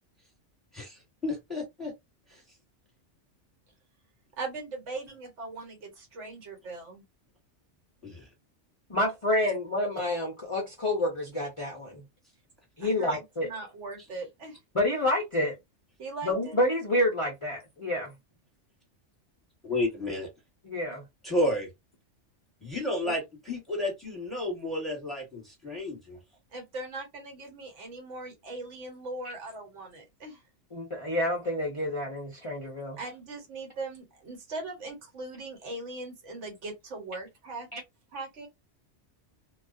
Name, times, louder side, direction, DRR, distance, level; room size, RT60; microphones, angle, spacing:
voice 1, 0.7-1.9 2.3-2.4 8.0-8.3 19.6-20.3 21.2-21.7 22.6-26.2, left 1 dB, ahead, 1.1 m, -31 dB
voice 2, 4.4-7.0 12.8-14.6 16.0-16.6 26.5-30.4 33.0-37.7 38.1-38.5, right 3 dB, 80° right, 1.2 m, -40 dB
voice 3, 8.9-12.0 12.8-13.5 14.7-15.6 16.2-18.1 20.6-21.0 23.1-23.2 30.7-33.0 37.7-37.8, left 1 dB, 40° left, 0.5 m, -28 dB
2.3 x 2.2 x 2.4 m
omnidirectional pair, 1.2 m